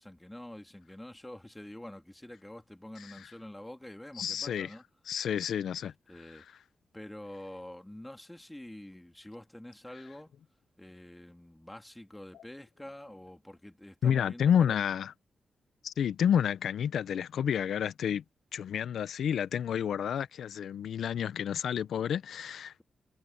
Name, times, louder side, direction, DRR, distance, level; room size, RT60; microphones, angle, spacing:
voice 1, 0.0-4.8 5.8-6.5 6.9-10.3 10.8-14.8, left 1 dB, 10° left, 2.6 m, -47 dB
voice 2, 4.2-4.7 5.1-5.9 14.0-15.1 15.8-18.2 18.5-22.8, left 8 dB, 85° left, 0.5 m, -30 dB
cardioid pair, 70°, 0 cm